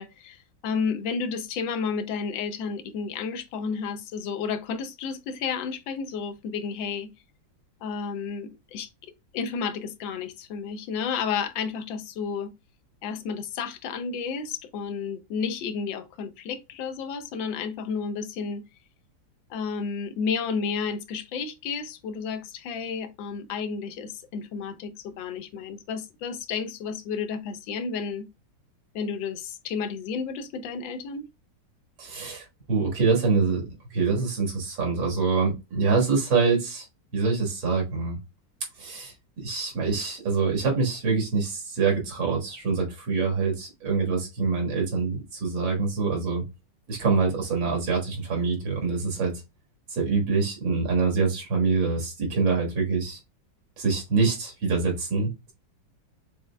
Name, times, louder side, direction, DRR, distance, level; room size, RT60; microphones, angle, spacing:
voice 1, 0.0-7.1 7.8-8.9 9.3-12.5 13.0-18.6 19.5-28.3 28.9-31.3, left 5 dB, 85° left, 1.4 m, -31 dB
voice 2, 32.0-33.6 33.9-36.9 37.1-38.2 38.8-46.4 46.9-49.4 49.9-53.2 53.8-55.5, right 4 dB, 85° right, 2.3 m, -25 dB
6.5 x 3.1 x 2.2 m
omnidirectional pair, 2.0 m